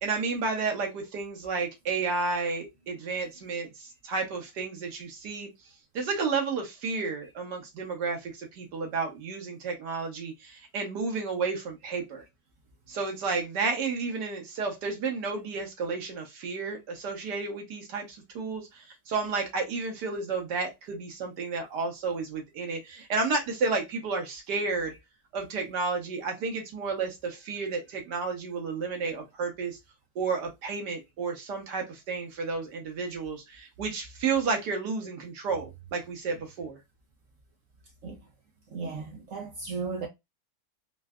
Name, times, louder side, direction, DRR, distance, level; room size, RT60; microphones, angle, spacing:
voice 1, 0.0-5.5 5.9-12.2 12.9-24.9 25.3-29.8 30.1-36.8, right 4 dB, 80° right, 1.7 m, -31 dB
voice 2, 38.7-40.1, right 4 dB, 60° right, 0.9 m, -36 dB
3.9 x 2.1 x 2.3 m
omnidirectional pair, 1.8 m